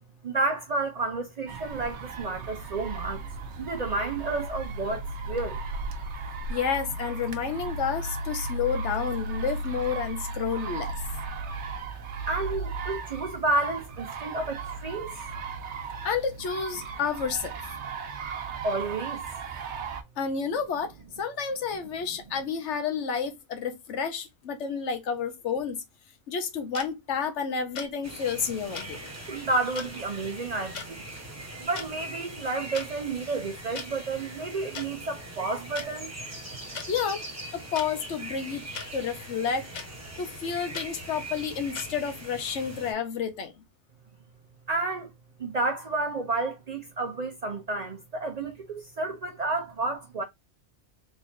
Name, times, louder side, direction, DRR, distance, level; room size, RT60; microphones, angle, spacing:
voice 1, 0.2-3.2 3.6-5.6 12.3-15.2 18.6-19.2 29.3-31.0 31.6-36.1 44.7-45.1 45.4-50.2, right 3 dB, 55° right, 0.5 m, -31 dB
sound 1, 1.5-20.0, right 3 dB, 75° right, 1.0 m, -36 dB
voice 2, 6.5-10.9 16.0-17.5 20.2-25.8 26.3-29.1 36.9-37.2 37.5-38.6 38.9-39.7 40.2-43.6, left 6 dB, 85° left, 1.1 m, -30 dB
sound 2, 26.7-26.9 27.8-27.9 28.7-28.9 29.8-29.9 30.7-30.9 31.6-31.9 32.7-32.9 33.8-33.9 34.7-34.9 35.8-35.9 36.7-36.9 37.7-37.9 38.7-38.9 39.7-39.9 40.7-40.9 41.7-41.9, left 6 dB, 45° left, 0.7 m, -37 dB
sound 3, 28.0-42.9, right 1 dB, 15° right, 0.9 m, -41 dB
3.6 x 3.2 x 2.5 m
omnidirectional pair, 1.2 m